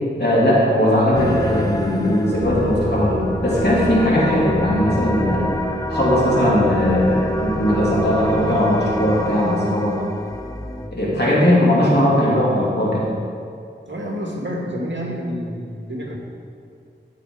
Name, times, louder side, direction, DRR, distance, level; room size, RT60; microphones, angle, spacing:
voice 1, 0.2-5.5 5.9-10.0 10.9-13.1, left 1 dB, 60° left, -6 dB, 3.1 m, -18 dB
sound 1, 1.1-10.9, equal, 20° left, 0.9 m, -27 dB
voice 2, 13.9-16.2, equal, 70° right, -2 dB, 2.1 m, -28 dB
13.5 x 7.0 x 4.8 m, 2.3 s
wide cardioid pair, 45°, 20 cm